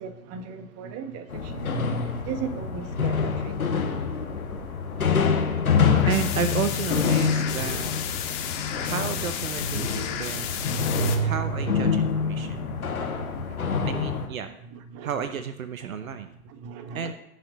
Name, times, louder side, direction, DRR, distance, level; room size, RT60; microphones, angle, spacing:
voice 1, 0.0-1.8 2.2-3.7 10.8-11.3 12.4-13.9 14.9-15.1 16.6-17.1, right 6 dB, 35° right, 1.4 m, -38 dB
sound 1, 1.3-14.3, left 5 dB, 85° left, 1.7 m, -26 dB
sound 2, 6.0-11.1, left 9 dB, 45° left, 1.9 m, -33 dB
voice 2, 6.0-7.9 8.8-10.6 11.2-12.6 13.9-14.5 15.0-16.3 16.9-17.1, right 7 dB, 75° right, 0.9 m, -32 dB
15.5 x 6.5 x 4.1 m
figure-of-eight pair, 95°, 42 cm